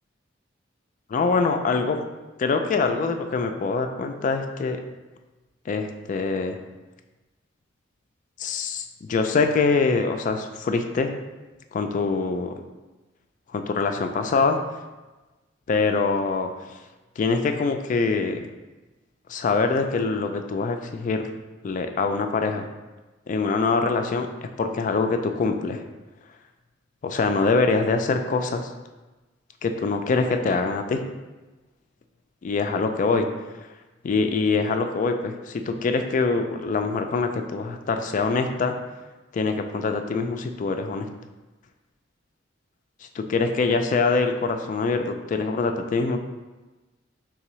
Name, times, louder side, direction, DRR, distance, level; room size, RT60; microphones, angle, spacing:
voice 1, 1.1-2.0 2.4-4.8 5.7-6.6 8.4-11.1 11.7-12.5 13.5-14.6 15.7-16.5 17.2-18.4 19.3-21.2 21.6-22.7 23.3-24.3 24.6-25.8 27.0-28.7 29.6-31.0 32.4-33.3 34.0-38.7 39.3-41.1 43.2-46.2, left 4 dB, 40° left, 6 dB, 0.3 m, -24 dB
3.6 x 3.3 x 3.0 m, 1.2 s
head